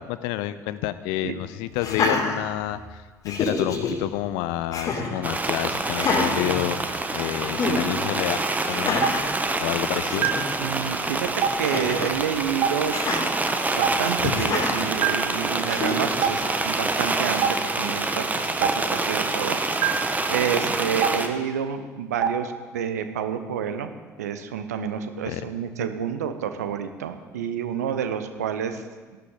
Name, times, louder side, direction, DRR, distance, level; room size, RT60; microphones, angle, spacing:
voice 1, 0.0-6.8 7.1-8.4 8.7-9.2 9.6-10.3 14.2-14.4 20.7-20.8 25.2-25.4, left 14 dB, 60° left, 14 dB, 0.6 m, -29 dB
Laughter, 1.8-2.9 3.2-3.9 4.7-5.2 5.9-7.2 7.5-7.8 8.7-9.3 9.8-9.9 10.1-10.5 11.6-12.2 12.9-13.2 14.4-14.8 15.7-16.3, left 3 dB, 40° left, 2.3 m, -27 dB
sound 1, 5.2-21.3, right 2 dB, 20° right, 1.3 m, -27 dB
Stream, 9.0-9.1 10.2-10.3 11.4-11.5 12.6-12.7 13.8-13.9 15.0-15.1 16.2-16.3 17.4-17.5 18.6-18.7 19.8-19.9 21.0-21.1 22.2-22.3, right 9 dB, 50° right, 1.0 m, -22 dB
voice 2, 10.6-13.0 13.7-19.6 19.8-23.9 24.2-28.8, right 8 dB, 75° right, 9 dB, 0.8 m, -29 dB
15.0 x 12.0 x 3.8 m, 1.4 s
figure-of-eight pair, 55°, 9 cm